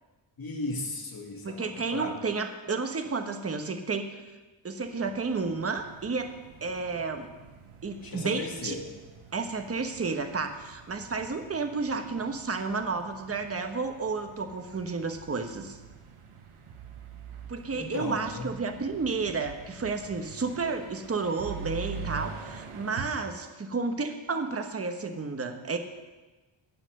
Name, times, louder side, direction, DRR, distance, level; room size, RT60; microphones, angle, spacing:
voice 1, 0.4-2.1 8.0-8.9 17.7-18.5, left 3 dB, 45° left, 0 dB, 2.5 m, -36 dB
voice 2, 1.4-4.2 4.6-6.3 6.6-7.3 7.8-8.8 9.3-15.8 17.5-25.8, right 4 dB, 30° right, 7 dB, 1.1 m, -31 dB
sound 1, 4.8-23.1, right 5 dB, 80° right, 1.4 m, -45 dB
17.5 x 5.8 x 6.6 m, 1.2 s
wide cardioid pair, 125°, 49 cm